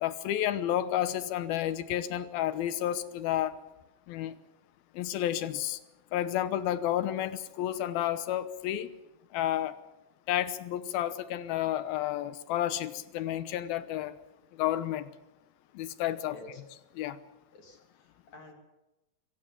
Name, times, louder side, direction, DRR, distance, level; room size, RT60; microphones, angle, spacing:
voice 1, 0.0-3.6 4.1-4.3 4.9-5.8 6.1-8.9 9.3-9.8 10.3-14.1 14.6-15.1 15.7-16.4 17.0-17.2, left 12 dB, 90° left, 13 dB, 2.9 m, -31 dB
voice 2, 17.5-18.5, left 2 dB, 55° left, 3 dB, 4.0 m, -50 dB
25.5 x 16.0 x 7.4 m, 1.0 s
omnidirectional pair, 4.1 m